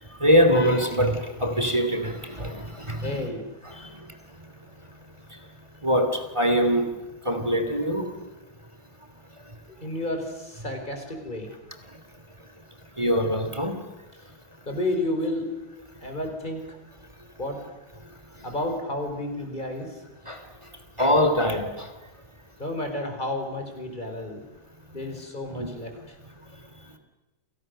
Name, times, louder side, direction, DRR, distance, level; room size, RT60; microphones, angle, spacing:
voice 1, 0.2-3.3 5.8-6.9 7.2-8.1 13.0-13.8 20.3-20.4 21.0-21.9 25.5-25.7, equal, 15° right, 7 dB, 2.7 m, -23 dB
voice 2, 3.0-3.4 3.7-3.9 9.8-11.5 14.6-15.5 16.0-16.6 17.4-17.6 18.4-20.0 22.6-24.5 24.9-25.9, left 1 dB, 20° left, 4 dB, 5.0 m, -31 dB
30.0 x 27.5 x 6.7 m, 1.0 s
omnidirectional pair, 2.3 m